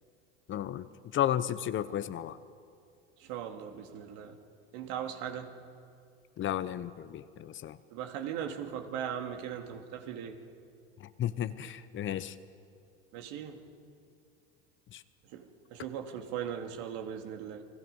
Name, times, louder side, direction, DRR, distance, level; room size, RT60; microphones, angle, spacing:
voice 1, 0.5-0.9 1.1-2.4 6.4-7.8 11.0-12.4 14.9-15.0, left 11 dB, 40° left, 14 dB, 0.9 m, -33 dB
voice 2, 3.2-4.4 4.7-5.5 7.9-10.4 13.1-13.7 15.2-17.6, right 9 dB, 65° right, 5 dB, 2.3 m, -39 dB
29.5 x 20.5 x 5.5 m, 2.3 s
hypercardioid pair, 95°, 32 cm